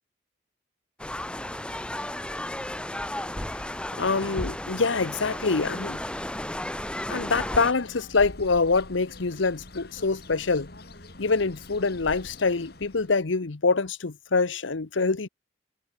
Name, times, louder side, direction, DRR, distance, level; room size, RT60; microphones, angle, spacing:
sound 1, 1.0-7.7, left 1 dB, 5° left, 0.8 m, -34 dB
voice 1, 4.0-6.0 7.1-10.7 11.2-15.3, left 4 dB, 80° left, 0.9 m, -25 dB
Bird, 7.3-13.2, left 1 dB, 55° left, 3.4 m, -44 dB
head